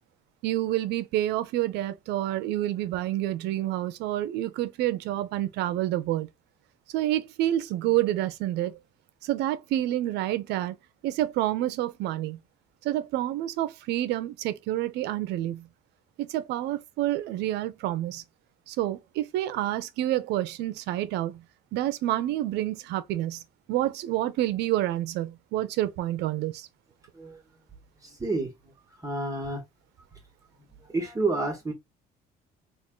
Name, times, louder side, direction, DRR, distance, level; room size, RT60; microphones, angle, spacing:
voice 1, 0.4-6.3 6.9-8.8 9.2-10.8 11.0-12.4 12.8-15.7 16.2-18.2 18.7-21.4 21.7-23.4 23.7-26.7, right 14 dB, 85° right, 0.6 m, -28 dB
voice 2, 28.0-28.5 29.0-29.6 30.8-31.7, right 2 dB, 20° right, 1.3 m, -29 dB
3.7 x 2.5 x 3.7 m
cardioid pair, 110°, 17 cm